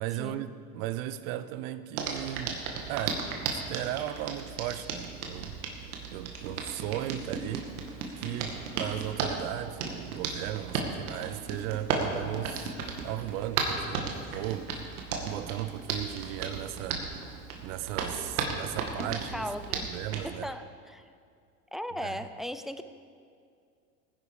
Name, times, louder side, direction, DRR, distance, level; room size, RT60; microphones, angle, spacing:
voice 1, 0.0-2.6 2.9-5.6 6.1-12.8 13.0-14.7 15.2-20.5 22.0-22.2, right 13 dB, 65° right, 14 dB, 0.8 m, -36 dB
Hands, 1.9-20.2, right 5 dB, 80° right, 2.1 m, -35 dB
voice 2, 19.0-19.9 20.2-21.0 21.7-22.8, equal, ahead, 10 dB, 0.4 m, -37 dB
17.5 x 10.5 x 4.9 m, 2.3 s
hypercardioid pair, 95°, 43 cm